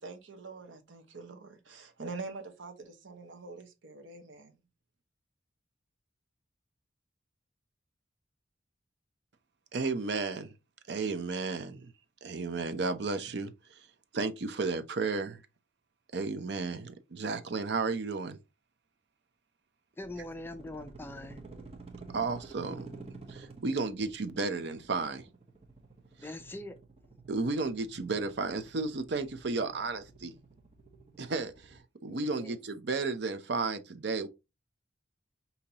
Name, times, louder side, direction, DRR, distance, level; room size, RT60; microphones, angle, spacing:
voice 1, 0.0-4.6, right 3 dB, 80° right, 0.9 m, -45 dB
voice 2, 9.7-10.5 10.9-11.9 12.2-13.8 14.1-15.4 16.1-18.4 22.1-22.9 23.3-25.3 27.3-30.3 31.2-34.3, right 3 dB, 60° right, 0.6 m, -33 dB
voice 3, 20.0-21.4 26.2-26.8 32.1-32.6, left 1 dB, 10° left, 0.4 m, -42 dB
sound 1, 20.0-31.8, right 3 dB, 30° right, 0.8 m, -51 dB
5.3 x 2.8 x 2.8 m
head